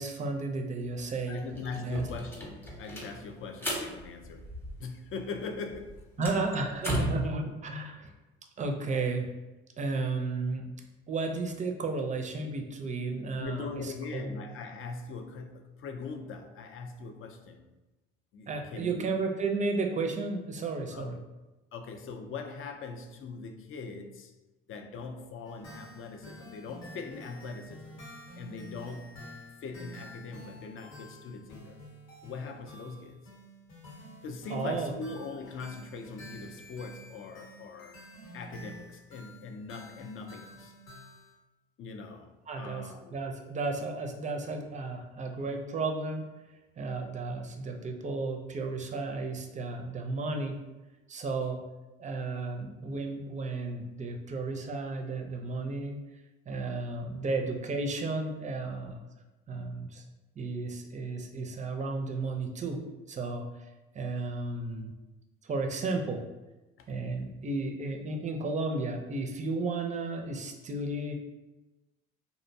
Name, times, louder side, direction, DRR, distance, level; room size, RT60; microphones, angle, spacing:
voice 1, 0.0-1.4 1.8-2.1 6.2-8.1 8.6-9.3 9.8-10.6 11.1-14.4 18.5-21.2 34.5-34.9 42.5-42.8 43.1-46.2 46.8-50.6 51.1-51.6 52.0-56.0 56.5-59.0 59.5-60.0 60.4-62.8 63.1-63.7 63.9-64.9 65.4-66.2 66.9-71.1, right 3 dB, 25° right, 4 dB, 0.4 m, -33 dB
sound 1, 0.8-0.9 1.2-5.1 5.4-7.3, equal, 10° left, 0.7 m, -37 dB
voice 2, 1.3-4.5 4.8-6.4 7.4-7.5 13.4-17.7 18.3-19.1 20.9-21.2 21.7-24.3 24.7-28.0 28.3-29.3 29.6-31.8 32.2-33.2 34.2-38.0 38.3-40.7 41.8-43.2 66.8-66.9, left 4 dB, 45° left, 5 dB, 0.4 m, -41 dB
sound 2, 25.4-41.3, equal, 85° left, 0.9 m, -50 dB
2.6 x 2.1 x 2.6 m, 1.1 s
hypercardioid pair, 65°, 29 cm